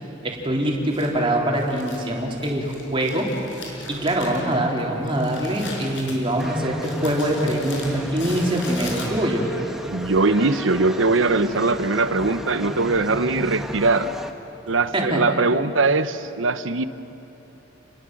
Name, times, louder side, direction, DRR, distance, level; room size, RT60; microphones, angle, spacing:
voice 1, 0.2-3.3 3.9-9.5 14.9-15.2, right 1 dB, 25° right, -1 dB, 3.7 m, -23 dB
Crumpling crinkling, 0.9-9.5, left 2 dB, 65° left, 5.3 m, -39 dB
sound 1, 6.4-14.3, equal, ahead, 1.3 m, -35 dB
voice 2, 9.9-14.1 14.7-16.9, right 3 dB, 80° right, 12 dB, 1.0 m, -21 dB
29.5 x 21.0 x 7.8 m, 3.0 s
head